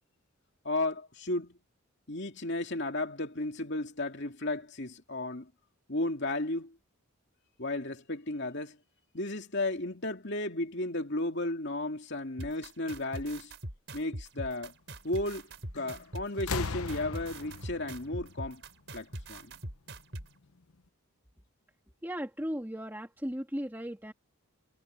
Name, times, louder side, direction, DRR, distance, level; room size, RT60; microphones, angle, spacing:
voice 1, 0.6-1.6 2.1-5.5 5.9-6.8 7.6-8.8 9.1-13.5 13.9-14.7 15.0-15.5 15.7-18.6 18.9-19.6, left 2 dB, 50° left, 2.6 m, -34 dB
sound 1, 12.4-20.3, right 1 dB, 55° right, 5.6 m, -41 dB
sound 2, 15.7-16.0 16.4-19.1 20.2-20.3, left 4 dB, 75° left, 1.0 m, -38 dB
voice 2, 22.0-24.1, equal, 10° right, 2.1 m, -36 dB
head